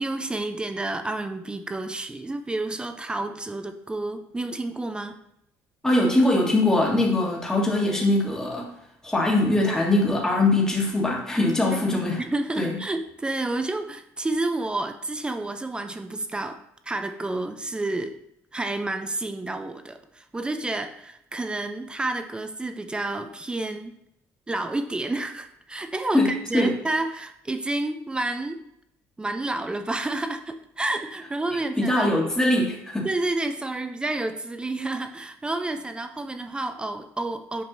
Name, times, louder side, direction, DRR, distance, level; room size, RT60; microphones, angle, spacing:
voice 1, 0.0-5.2 11.9-18.2 18.5-24.0 24.5-28.6 29.2-32.1 33.0-37.6, right 2 dB, 15° right, 8 dB, 0.5 m, -30 dB
voice 2, 5.8-8.7 9.0-12.2 12.6-12.8 26.1-26.8 31.8-33.1, left 2 dB, 10° left, -2 dB, 1.6 m, -22 dB
7.5 x 5.2 x 2.7 m, 0.78 s
supercardioid pair, 85°, 6 cm